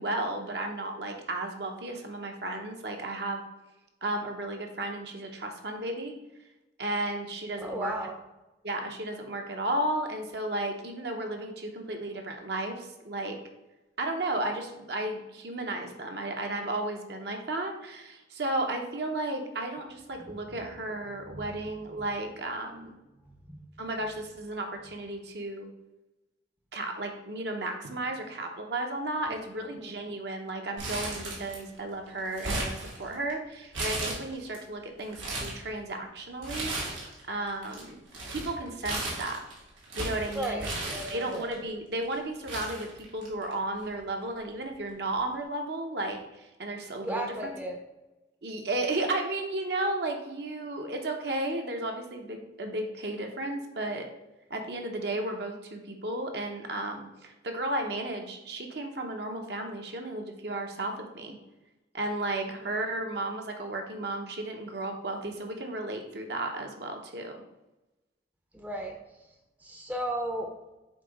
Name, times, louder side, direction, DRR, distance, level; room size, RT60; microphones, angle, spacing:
voice 1, 0.0-3.4 4.0-6.1 6.8-7.9 8.6-13.4 14.0-23.0 23.8-25.7 26.7-36.7 37.3-38.0 38.3-39.4 40.0-40.7 41.1-47.5 48.4-54.1 54.5-61.4 61.9-67.4, right 2 dB, 60° right, 3 dB, 0.9 m, -34 dB
voice 2, 7.6-8.2 20.2-20.7 21.1-22.1 23.2-23.7 29.3-29.5 29.8-29.9 40.3-41.5 47.0-47.8 68.5-69.0 69.6-70.5, right 1 dB, 10° right, 2 dB, 0.6 m, -36 dB
Crumpling crinkling, 30.8-31.8 32.1-33.3 33.7-34.6 35.0-35.6 36.4-37.2 37.5-41.5 42.1-42.2 42.5-43.5 43.8-43.9 44.9-45.1, right 2 dB, 90° right, 2.2 m, -35 dB
7.6 x 2.9 x 5.2 m, 1.0 s
head